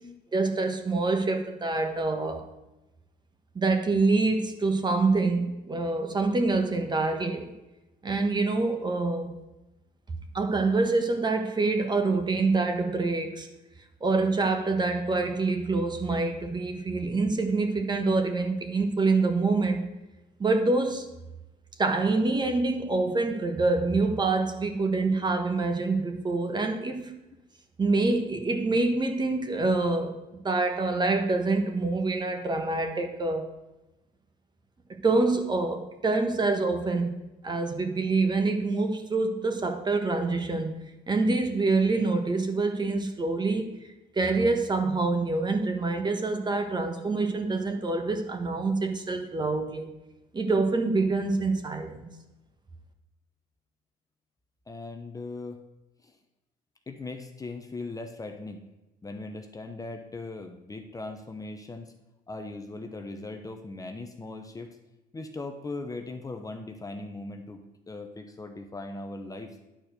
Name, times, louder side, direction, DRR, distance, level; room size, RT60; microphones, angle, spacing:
voice 1, 0.3-2.5 3.5-7.5 8.0-9.3 10.3-13.5 14.0-19.9 20.4-21.1 21.8-27.2 27.8-30.2 30.4-33.5 34.9-37.2 37.4-40.7 41.1-49.9 50.3-52.1, right 3 dB, 25° right, 6 dB, 1.3 m, -26 dB
voice 2, 22.9-23.2 54.7-55.6 56.0-56.2 56.9-58.6 59.0-61.9 62.3-64.8 65.1-67.6 67.9-69.6, left 2 dB, 20° left, 5 dB, 0.8 m, -39 dB
10.5 x 4.4 x 6.5 m, 1.0 s
cardioid pair, 110°, 17 cm